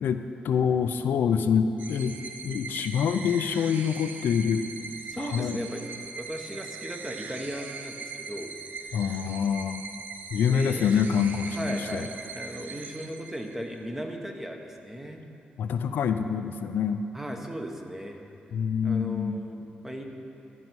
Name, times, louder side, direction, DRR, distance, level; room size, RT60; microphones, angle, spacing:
voice 1, 0.0-2.2 2.4-4.7 5.2-5.6 8.9-9.8 10.3-12.1 15.6-17.1 18.5-19.4, left 7 dB, 80° left, 9 dB, 0.4 m, -26 dB
sound 1, 1.8-13.7, right 4 dB, 65° right, 0.6 m, -41 dB
voice 2, 5.1-5.8 6.2-8.5 10.5-11.0 11.5-15.2 17.1-18.2 18.8-20.0, equal, 10° right, 3 dB, 1.0 m, -37 dB
14.5 x 5.4 x 4.7 m, 3.0 s
cardioid pair, 85°, 3 cm